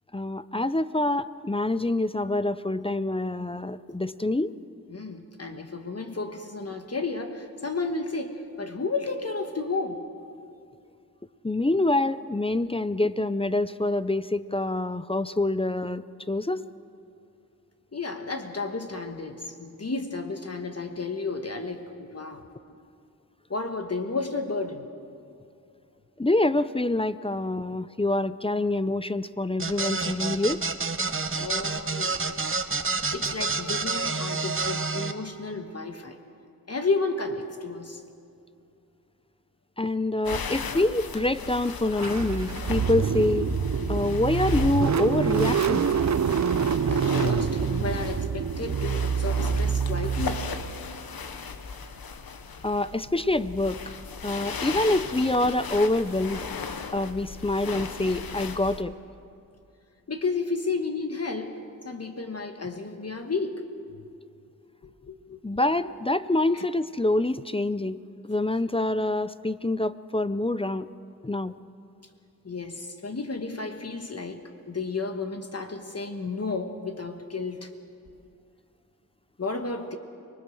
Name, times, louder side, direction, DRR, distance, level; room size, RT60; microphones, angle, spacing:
voice 1, 0.1-4.5 11.4-16.6 26.2-30.6 39.8-43.5 43.9-45.9 52.6-53.8 54.2-56.5 56.9-58.9 65.4-68.0 68.3-70.9 71.2-71.6, left 2 dB, 15° left, 14 dB, 0.5 m, -26 dB
voice 2, 4.9-10.0 17.9-22.4 23.5-24.9 31.2-32.4 32.8-36.2 36.7-38.0 46.9-50.5 60.1-61.6 61.8-63.6 63.9-64.0 64.8-65.4 66.5-66.6 72.4-74.4 74.7-77.7 79.4-80.0, left 3 dB, 45° left, 5 dB, 1.3 m, -32 dB
sound 1, 29.6-35.1, right 4 dB, 35° right, 1.1 m, -28 dB
sound 2, 40.2-58.8, left 5 dB, 85° left, 1.1 m, -36 dB
Car / Engine starting, 42.0-50.8, right 7 dB, 50° right, 0.6 m, -26 dB
25.0 x 20.0 x 6.3 m, 2.6 s
wide cardioid pair, 75°, 35 cm